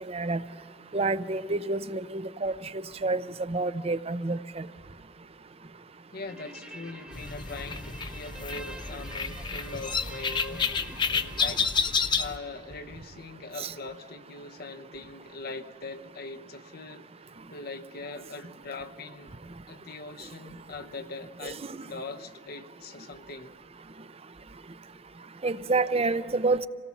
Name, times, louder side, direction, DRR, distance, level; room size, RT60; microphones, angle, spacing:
voice 1, 0.1-0.4 0.9-4.7 13.6-13.7 21.4-21.8 25.4-26.7, right 3 dB, 30° right, 14 dB, 0.6 m, -29 dB
voice 2, 6.1-17.1 17.5-19.3 19.7-23.5, left 3 dB, 55° left, 6 dB, 0.8 m, -42 dB
Guitar, 6.3-13.0, right 1 dB, 5° right, 1.3 m, -47 dB
sound 1, 7.1-12.4, left 5 dB, 25° left, 0.6 m, -30 dB
27.0 x 18.0 x 7.1 m, 2.4 s
head